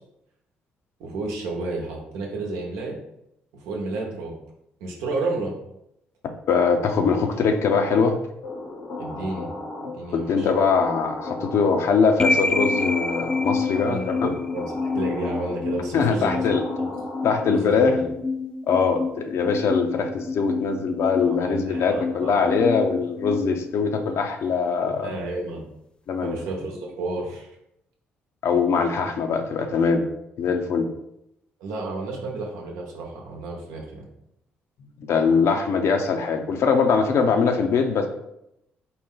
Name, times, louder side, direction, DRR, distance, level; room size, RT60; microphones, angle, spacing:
voice 1, 1.0-3.0 3.5-4.3 4.8-5.5 9.0-9.5 9.8-10.5 13.7-16.4 16.8-16.9 17.5-18.1 21.3-22.4 24.8-25.7 26.2-27.5 31.6-34.1, right 2 dB, 80° right, -1 dB, 0.9 m, -31 dB
voice 2, 6.5-8.2 10.1-14.3 15.9-16.6 17.2-18.0 18.7-25.1 26.1-26.4 28.4-30.0 30.4-30.9 35.0-38.1, left 5 dB, 65° left, 5 dB, 0.6 m, -22 dB
sound 1, 8.4-17.9, left 2 dB, 80° left, 1.0 m, -35 dB
sound 2, 12.2-24.3, left 4 dB, 20° left, 0.3 m, -28 dB
4.1 x 2.2 x 3.7 m, 0.81 s
hypercardioid pair, 50°, 5 cm